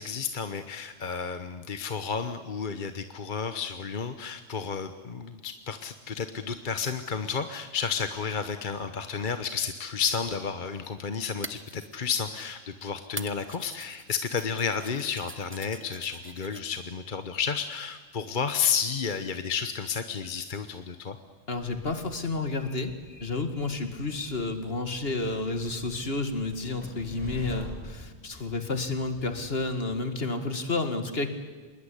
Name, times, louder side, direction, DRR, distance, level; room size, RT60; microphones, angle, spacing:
voice 1, 0.0-21.2, left 6 dB, 50° left, 9 dB, 1.2 m, -31 dB
sound 1, 11.2-12.5 13.2-16.6, right 2 dB, 10° right, 0.8 m, -44 dB
voice 2, 21.5-22.9 23.2-31.3, left 3 dB, 65° left, 8 dB, 2.3 m, -30 dB
Train, 21.5-29.9, equal, 10° left, 6.3 m, -47 dB
26.0 x 21.0 x 10.0 m, 1.4 s
omnidirectional pair, 1.1 m